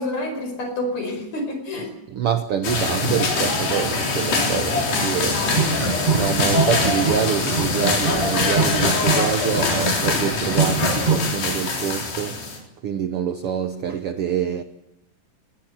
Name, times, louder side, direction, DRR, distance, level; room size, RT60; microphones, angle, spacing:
voice 1, 0.0-1.9 4.9-5.5, left 1 dB, 50° left, 6.1 m, -28 dB
voice 2, 2.1-5.4 6.2-14.6, right 8 dB, 85° right, 1.2 m, -26 dB
sound 1, 2.6-12.6, left 3 dB, 85° left, 5.7 m, -23 dB
sound 2, 5.5-7.3 7.5-11.3, right 5 dB, 25° right, 0.8 m, -23 dB
20.0 x 18.0 x 9.4 m
omnidirectional pair, 4.0 m